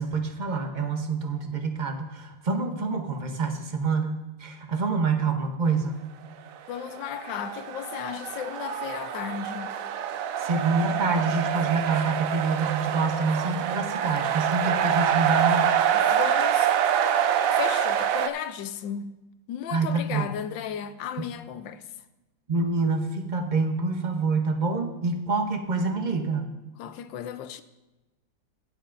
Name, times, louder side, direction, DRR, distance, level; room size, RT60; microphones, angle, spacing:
voice 1, 0.0-6.0 10.4-15.7 19.7-20.3 22.5-26.5, right 4 dB, 50° right, 0.5 m, -27 dB
voice 2, 6.7-9.7 15.9-16.7 17.5-19.2 19.5-21.8 26.8-27.6, left 9 dB, 75° left, 1.3 m, -35 dB
sound 1, 6.8-18.3, right 9 dB, 90° right, 0.7 m, -26 dB
21.5 x 8.0 x 2.5 m
omnidirectional pair, 2.1 m